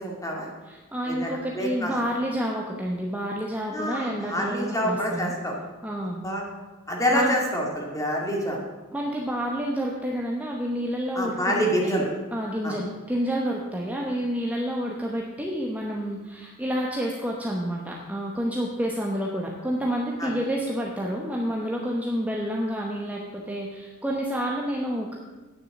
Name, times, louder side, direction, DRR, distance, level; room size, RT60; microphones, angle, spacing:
voice 1, 0.0-0.5 1.1-1.9 3.7-5.5 6.2-6.4 6.9-8.6 11.1-12.1 12.6-12.7 20.2-20.3, equal, 15° left, -1 dB, 2.1 m, -27 dB
voice 2, 0.6-5.3 5.8-6.2 7.1-7.4 8.9-12.0 12.3-25.2, equal, 5° right, -2 dB, 0.9 m, -29 dB
9.7 x 6.4 x 7.1 m, 1.2 s
head